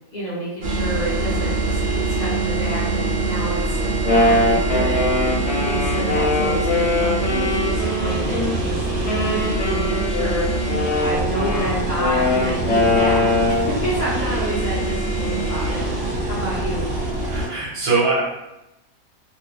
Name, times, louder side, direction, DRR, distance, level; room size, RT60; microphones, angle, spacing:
voice 1, 0.1-3.8 4.0-5.1 5.6-10.5 11.0-15.9 16.3-16.9, equal, 85° left, -7 dB, 0.3 m, -29 dB
sound 1, 0.6-17.5, right 2 dB, 60° right, 0.7 m, -24 dB
Wind instrument woodwind instrument, 3.8-8.6 9.0-13.8, left 2 dB, 60° left, 0.8 m, -22 dB
voice 2, 17.3-18.2, right 3 dB, 80° right, -6 dB, 1.2 m, -21 dB
2.5 x 2.2 x 2.2 m, 0.90 s
omnidirectional pair, 1.5 m